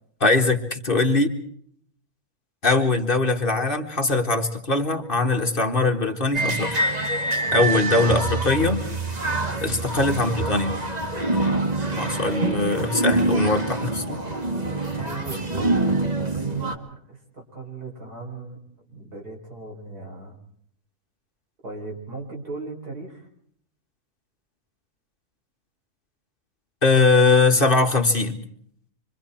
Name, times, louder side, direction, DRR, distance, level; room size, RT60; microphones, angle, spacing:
voice 1, 0.2-1.3 2.6-6.8 7.5-8.8 9.6-10.8 12.0-14.2 26.8-28.4, left 3 dB, 35° left, 4 dB, 1.8 m, -21 dB
sound 1, 6.3-16.8, right 2 dB, 25° right, 2.0 m, -25 dB
voice 2, 14.9-18.6 18.9-20.4 21.6-23.3, right 3 dB, 85° right, 1 dB, 5.4 m, -37 dB
27.0 x 24.5 x 4.4 m, 0.64 s
omnidirectional pair, 1.6 m